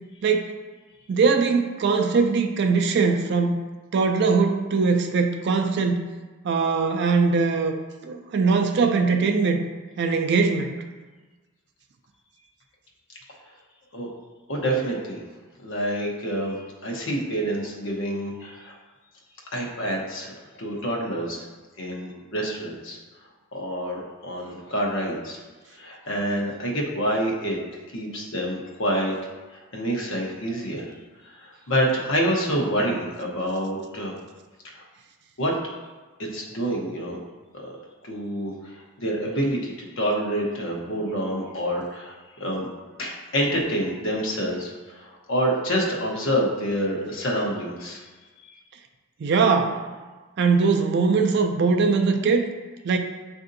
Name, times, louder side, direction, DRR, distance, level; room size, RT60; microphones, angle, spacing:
voice 1, 1.1-3.6 3.9-6.1 6.4-7.8 8.0-9.6 10.0-10.7 49.2-49.8 50.4-52.5 52.8-53.0, right 4 dB, 50° right, 5 dB, 0.3 m, -21 dB
voice 2, 14.5-15.2 15.6-18.8 19.5-21.5 21.8-23.0 23.5-25.4 25.7-27.6 27.9-29.1 29.5-30.9 31.2-34.1 34.7-34.8 35.4-35.5 36.2-37.2 38.0-42.7 43.0-48.1 48.4-48.6, equal, 55° left, -1 dB, 0.8 m, -27 dB
7.4 x 2.6 x 2.6 m, 1.3 s
head